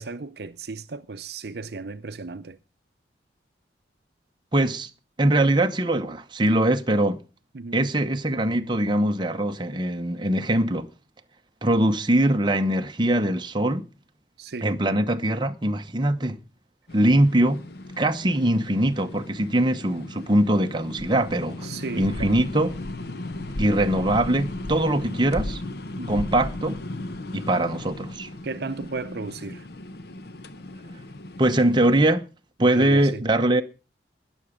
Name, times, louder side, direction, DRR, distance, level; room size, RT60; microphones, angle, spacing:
voice 1, 0.0-2.6 7.5-7.8 14.4-14.8 21.6-22.4 26.0-26.4 28.4-29.7 32.6-33.2, right 3 dB, 55° right, 0.6 m, -35 dB
voice 2, 4.5-4.9 5.2-7.2 7.7-10.9 11.6-13.9 14.6-16.4 16.9-17.6 18.0-21.7 22.0-22.7 23.6-25.6 26.1-26.8 27.3-28.3 31.4-32.3 32.6-33.6, right 1 dB, 25° right, 0.9 m, -22 dB
sound 1, 16.9-32.1, left 1 dB, 55° left, 0.8 m, -36 dB
19.5 x 7.1 x 5.1 m
head